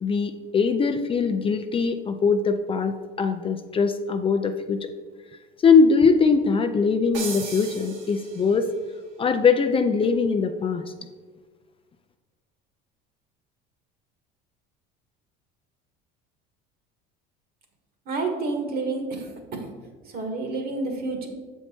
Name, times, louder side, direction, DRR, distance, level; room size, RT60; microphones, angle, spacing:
voice 1, 0.0-4.9 5.6-8.7 9.2-10.8, left 5 dB, 25° left, 7 dB, 0.5 m, -21 dB
sound 1, 7.1-8.8, right 4 dB, 65° right, 1.6 m, -37 dB
voice 2, 18.1-19.6 20.1-21.3, right 3 dB, 50° right, 4 dB, 1.6 m, -29 dB
6.9 x 4.5 x 4.4 m, 1.4 s
supercardioid pair, 90°, 20 cm